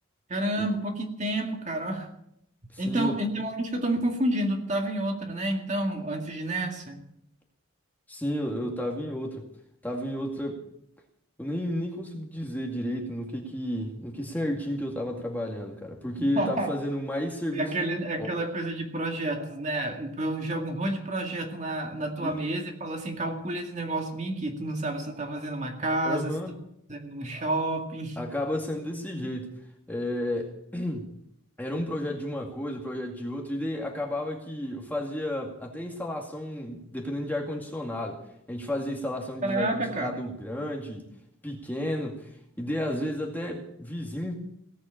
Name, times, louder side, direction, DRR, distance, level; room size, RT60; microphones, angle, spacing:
voice 1, 0.3-2.1 2.8-7.0 16.2-16.7 17.5-26.3 26.9-28.2 39.4-40.3, right 1 dB, 35° right, 2 dB, 2.1 m, -30 dB
voice 2, 2.7-3.2 8.1-9.4 9.8-10.6 11.4-18.3 22.2-22.3 26.0-26.5 28.2-29.5 29.9-31.1 31.6-38.2 38.5-41.0 41.4-44.4, left 1 dB, 10° left, 0 dB, 2.2 m, -32 dB
17.5 x 8.1 x 8.8 m, 0.76 s
head